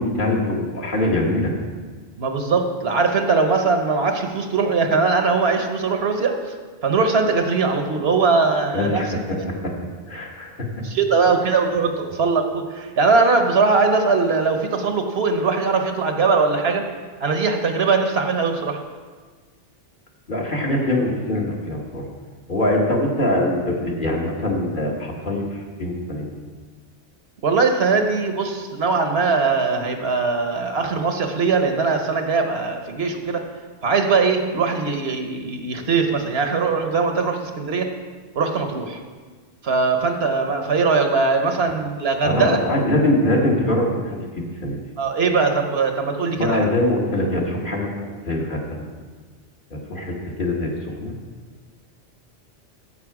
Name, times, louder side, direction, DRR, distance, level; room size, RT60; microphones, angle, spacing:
voice 1, 0.0-1.5 8.7-9.7 10.1-10.7 11.4-11.6 20.3-22.0 22.5-26.3 42.2-44.8 46.4-48.9 49.7-50.7 51.0-51.2, left 1 dB, 50° left, -2 dB, 1.8 m, -23 dB
voice 2, 2.2-6.4 6.8-9.0 10.8-16.8 17.2-18.8 27.4-33.4 33.8-37.9 38.4-39.0 39.6-42.6 45.0-46.7, right 4 dB, 65° right, 5 dB, 1.2 m, -20 dB
14.5 x 5.6 x 4.8 m, 1.5 s
omnidirectional pair, 1.1 m